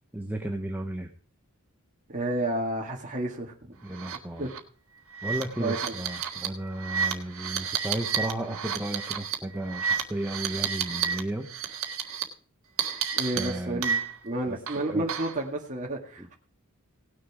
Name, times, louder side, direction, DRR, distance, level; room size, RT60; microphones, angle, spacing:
voice 1, 0.1-1.1 3.8-4.5 5.2-11.5 13.3-13.8 14.5-14.6 14.8-15.0 16.2-16.3, right 1 dB, 10° right, 3 dB, 0.9 m, -34 dB
voice 2, 2.1-3.8 4.4-4.5 5.6-5.9 13.1-16.3, right 1 dB, 35° right, -2 dB, 1.8 m, -31 dB
sound 1, 3.9-4.2 4.5-4.6 5.1-11.2 11.5-12.2 12.8-14.3 14.7-15.4, right 7 dB, 65° right, 1.6 m, -31 dB
18.0 x 6.5 x 4.8 m, 0.43 s
head